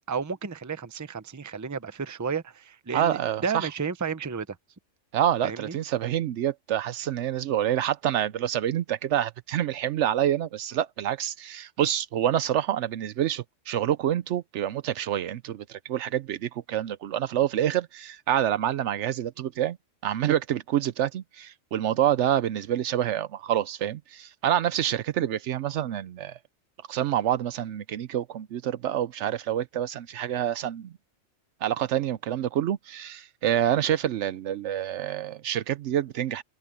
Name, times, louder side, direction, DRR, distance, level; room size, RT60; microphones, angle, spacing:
voice 1, 0.0-4.6 5.4-5.7, right 6 dB, 20° right, 0.6 m, -32 dB
voice 2, 2.9-3.7 5.1-19.8 20.0-26.4 26.9-30.9 31.6-36.4, right 11 dB, 70° right, 0.9 m, -27 dB
open air
omnidirectional pair, 1.3 m